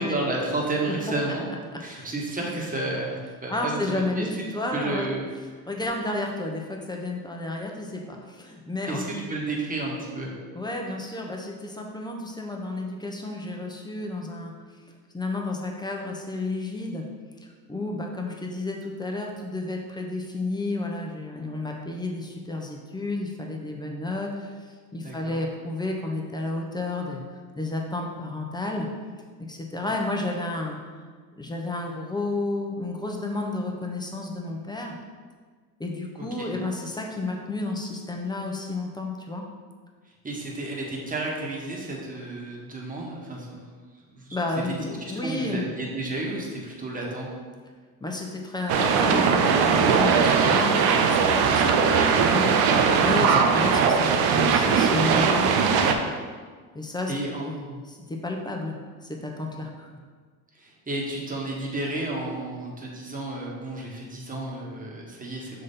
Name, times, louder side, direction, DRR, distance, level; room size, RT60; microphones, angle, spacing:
voice 1, 0.0-1.5 1.8-4.2 4.7-5.2 8.9-10.3 25.0-25.4 29.8-29.9 36.2-36.5 40.2-43.7 44.1-44.4 44.6-44.7 45.2-47.3 53.3-53.4 57.1-57.4 59.6-59.7 60.6-65.6, right 2 dB, 20° right, -2 dB, 1.6 m, -32 dB
voice 2, 3.5-5.1 5.7-9.0 10.5-14.5 15.1-17.1 17.4-24.6 24.9-27.2 27.6-28.9 29.5-30.8 31.4-34.9 35.8-39.4 44.3-45.9 48.0-55.9 56.7-57.1 57.4-59.9, left 2 dB, 10° left, 0 dB, 1.0 m, -31 dB
sound 1, 48.7-55.9, right 6 dB, 60° right, 0.7 m, -20 dB
6.2 x 3.8 x 4.2 m, 1.5 s
hypercardioid pair, 70°, 43 cm